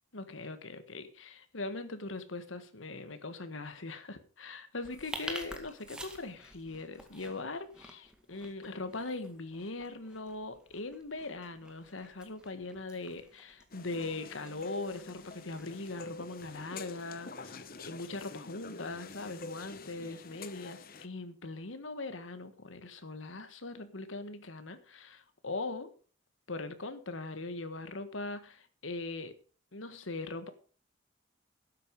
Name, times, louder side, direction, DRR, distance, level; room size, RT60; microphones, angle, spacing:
voice 1, 0.1-17.6 17.8-25.9 26.5-29.3 29.7-30.5, left 3 dB, 85° left, 1.6 m, -41 dB
sound 1, 4.8-16.9, right 1 dB, 5° right, 1.9 m, -50 dB
sound 2, 13.7-21.1, left 3 dB, 50° left, 0.9 m, -47 dB
12.5 x 9.3 x 5.2 m
head